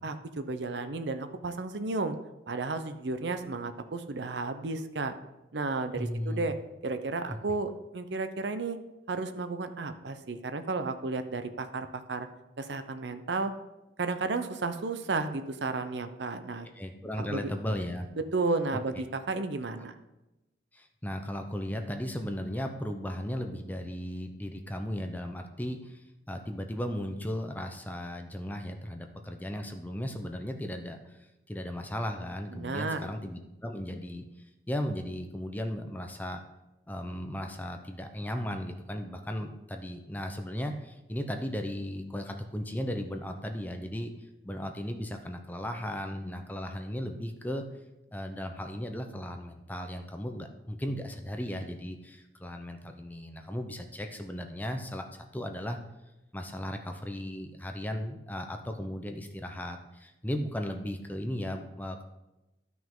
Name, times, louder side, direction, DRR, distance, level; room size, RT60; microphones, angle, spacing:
voice 1, 0.0-2.2 2.5-5.1 5.5-6.5 6.8-8.8 9.1-12.3 12.6-13.5 14.0-16.7 17.2-17.5 18.2-20.0 32.5-33.1, right 3 dB, 70° right, 9 dB, 0.7 m, -33 dB
voice 2, 5.9-6.5 7.3-7.4 16.8-18.1 20.7-31.2 31.5-34.3 34.7-36.4 36.9-44.1 44.4-47.6 48.1-55.8 56.3-62.0, equal, 10° left, 5 dB, 0.7 m, -36 dB
12.5 x 6.0 x 3.7 m, 0.97 s
head